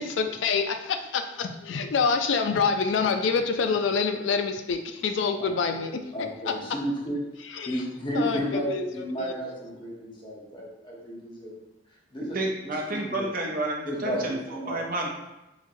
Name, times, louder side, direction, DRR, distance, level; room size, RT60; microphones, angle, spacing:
voice 1, 0.2-6.1 6.5-6.6 7.6-7.8 8.2-8.8 9.2-9.3, left 5 dB, 85° left, 7 dB, 0.4 m, -26 dB
voice 2, 6.1-7.2 7.6-11.6 12.1-12.4 13.1-13.2 13.9-14.2 14.5-14.9, equal, 25° left, -4 dB, 0.9 m, -32 dB
voice 3, 12.3-15.1, right 2 dB, 50° right, 1 dB, 0.6 m, -30 dB
3.9 x 2.9 x 2.6 m, 0.95 s
head